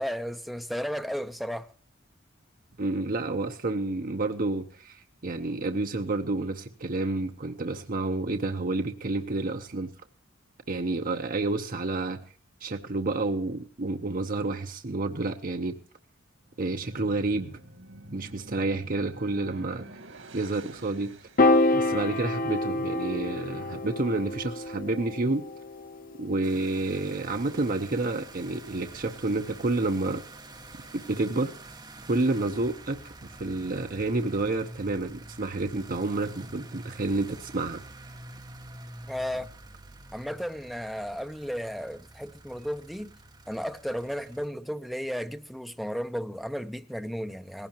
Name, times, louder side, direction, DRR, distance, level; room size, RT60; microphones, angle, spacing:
voice 1, 0.0-1.7 39.1-39.5 40.1-43.1 43.5-47.7, equal, ahead, 0.6 m, -34 dB
voice 2, 2.8-9.9 10.7-12.2 12.6-15.8 16.6-17.5 18.1-19.9 20.3-21.1 21.7-25.4 26.2-30.2 30.9-31.5 32.1-33.0 33.4-37.8, right 2 dB, 45° right, 0.8 m, -29 dB
sound 1, 16.4-21.8, right 2 dB, 85° right, 2.4 m, -48 dB
Piano, 21.4-27.8, left 2 dB, 45° left, 0.7 m, -28 dB
sound 2, 26.4-44.5, right 2 dB, 20° right, 1.1 m, -47 dB
18.5 x 16.0 x 3.0 m
head